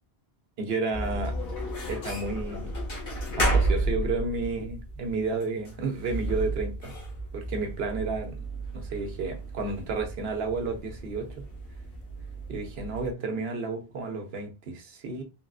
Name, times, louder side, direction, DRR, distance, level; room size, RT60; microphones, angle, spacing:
voice 1, 0.6-1.3 1.9-2.7 3.3-7.0 7.3-8.4 8.7-11.3 12.5-15.2, right 3 dB, 70° right, 0.9 m, -31 dB
sound 1, 0.9-13.1, right 2 dB, 60° left, 1.1 m, -32 dB
3.5 x 2.4 x 2.3 m
omnidirectional pair, 1.1 m